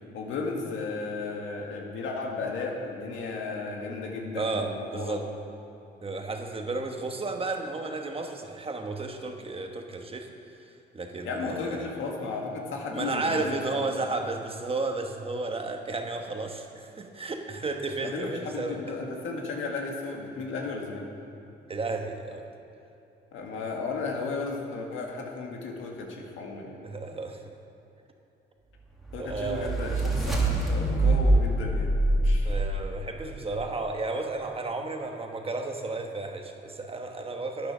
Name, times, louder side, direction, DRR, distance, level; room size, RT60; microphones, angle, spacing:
voice 1, 0.1-5.1 11.2-13.9 18.0-21.1 23.3-26.8 29.1-32.6, left 3 dB, 80° left, 0 dB, 1.9 m, -34 dB
voice 2, 4.3-5.3 6.0-10.3 10.9-11.9 12.9-18.8 21.7-22.4 26.8-27.4 29.2-29.8 32.4-37.7, right 3 dB, 30° right, 3 dB, 1.2 m, -33 dB
sound 1, 29.0-33.3, right 1 dB, ahead, 2.2 m, -25 dB
10.5 x 9.7 x 6.2 m, 2.9 s
cardioid pair, 90°, 20 cm